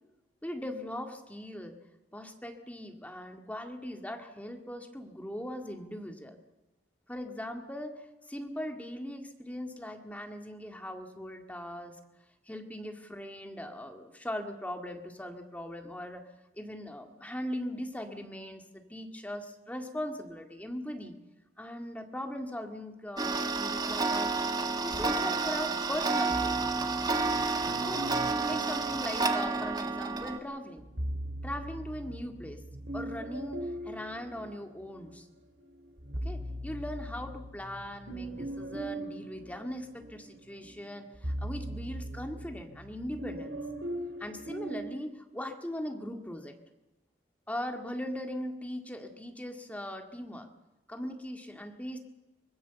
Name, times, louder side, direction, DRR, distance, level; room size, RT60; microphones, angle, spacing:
voice 1, 0.4-1.8 2.1-6.4 7.1-12.0 12.5-16.2 16.6-21.1 21.6-24.4 24.8-26.6 27.8-30.9 31.4-32.6 32.9-35.3 36.2-43.6 44.2-46.5 47.5-50.5 50.9-52.0, left 1 dB, 10° left, 4 dB, 2.1 m, -39 dB
Tick-tock, 23.2-30.4, right 3 dB, 25° right, 1.7 m, -30 dB
sound 1, 26.3-29.8 30.8-35.2 35.6-44.9, right 1 dB, 85° right, 3.9 m, -40 dB
24.0 x 20.5 x 7.0 m, 1.0 s
head